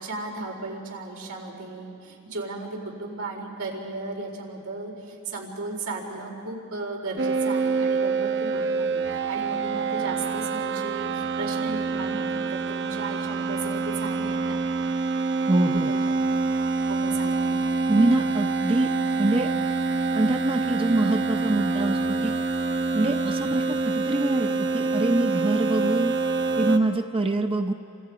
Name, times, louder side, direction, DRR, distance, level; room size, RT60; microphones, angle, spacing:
voice 1, 0.0-9.0 9.3-14.6 15.9-16.0 16.9-17.5, right 3 dB, 85° right, -1 dB, 4.4 m, -35 dB
sound 1, 7.2-26.8, right 4 dB, 55° right, 1.1 m, -26 dB
voice 2, 15.5-15.9 17.9-18.9 19.2-19.5 20.1-22.3 22.9-26.1 26.6-27.7, right 2 dB, 25° right, 5 dB, 0.7 m, -24 dB
30.0 x 26.5 x 5.0 m, 2.8 s
head